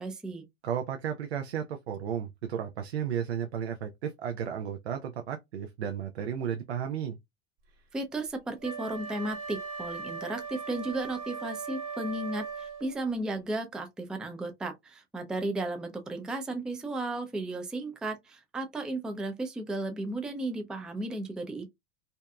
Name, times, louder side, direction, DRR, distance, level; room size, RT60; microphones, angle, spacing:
voice 1, 0.0-0.4 7.9-21.7, right 2 dB, 5° right, 0.3 m, -34 dB
voice 2, 0.6-7.2, right 8 dB, 80° right, 0.5 m, -33 dB
Wind instrument woodwind instrument, 8.6-13.0, right 5 dB, 50° right, 1.4 m, -39 dB
2.7 x 2.3 x 2.2 m
hypercardioid pair, 90°, 32 cm